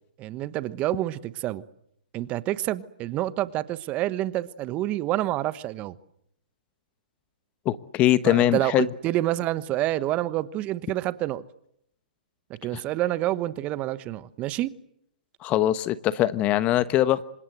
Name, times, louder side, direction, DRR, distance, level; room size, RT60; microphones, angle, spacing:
voice 1, 0.2-1.6 2.1-5.9 8.2-11.4 12.6-14.7, right 15 dB, 30° right, 16 dB, 1.1 m, -28 dB
voice 2, 7.6-8.9 15.4-17.2, left 13 dB, 25° left, 15 dB, 1.1 m, -22 dB
27.0 x 25.5 x 7.9 m, 0.75 s
hypercardioid pair, 130°, 5 cm